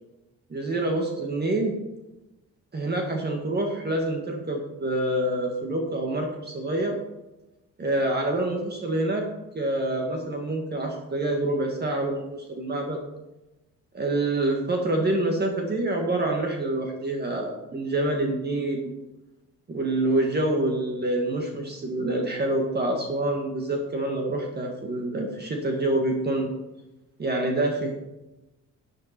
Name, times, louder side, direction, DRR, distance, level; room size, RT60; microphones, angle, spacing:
voice 1, 0.5-1.8 2.7-7.0 7.8-9.2 9.5-13.0 13.9-19.0 19.7-26.5 27.2-27.9, right 1 dB, 35° right, 2 dB, 1.9 m, -26 dB
11.0 x 10.0 x 4.5 m, 1.0 s
cardioid pair, 90°, 30 cm